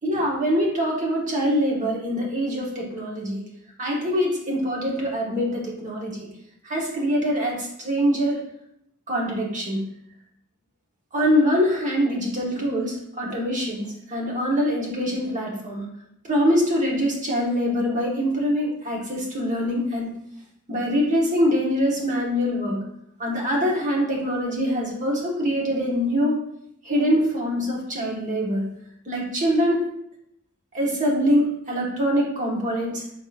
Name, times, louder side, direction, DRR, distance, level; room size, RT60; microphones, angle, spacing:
voice 1, 0.0-3.4 3.8-6.1 6.6-8.4 9.1-9.8 11.1-15.8 16.3-20.1 20.7-22.8 23.2-26.3 26.8-28.6 29.1-29.9 30.7-33.0, equal, 35° right, -2 dB, 1.0 m, -24 dB
4.5 x 3.6 x 2.4 m, 0.76 s
head